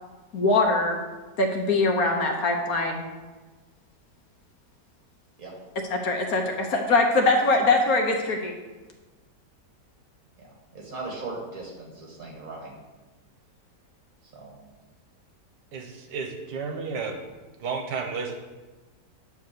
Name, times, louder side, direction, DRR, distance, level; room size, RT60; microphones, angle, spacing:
voice 1, 0.3-1.0 1.4-3.1 5.9-8.5, left 2 dB, 60° left, 2 dB, 1.3 m, -22 dB
voice 2, 10.4-12.8 14.3-14.6, right 3 dB, 55° right, -2 dB, 2.2 m, -38 dB
voice 3, 15.7-17.2 17.6-18.4, right 5 dB, 80° right, 4 dB, 1.5 m, -32 dB
8.7 x 3.4 x 6.6 m, 1.3 s
omnidirectional pair, 1.9 m